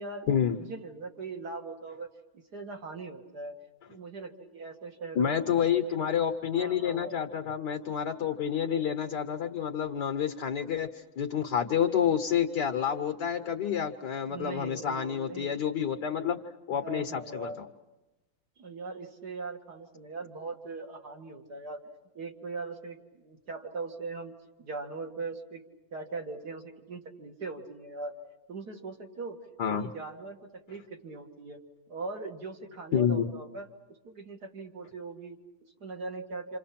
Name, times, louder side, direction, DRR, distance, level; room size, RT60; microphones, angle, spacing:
voice 1, 0.6-2.1 2.3-3.6 3.9-5.9 6.5-7.2 14.1-15.6 16.7-17.6 18.6-21.8 22.1-24.3 24.6-25.6 25.9-28.2 28.5-29.4 29.7-31.6 31.9-33.7 34.0-36.6, right 3 dB, 50° right, 2 dB, 2.5 m, -40 dB
voice 2, 5.1-10.9 11.2-16.4 16.7-17.6 29.6-29.9 32.9-33.3, left 8 dB, 60° left, 5 dB, 1.7 m, -29 dB
28.0 x 28.0 x 5.9 m, 1.1 s
omnidirectional pair, 2.2 m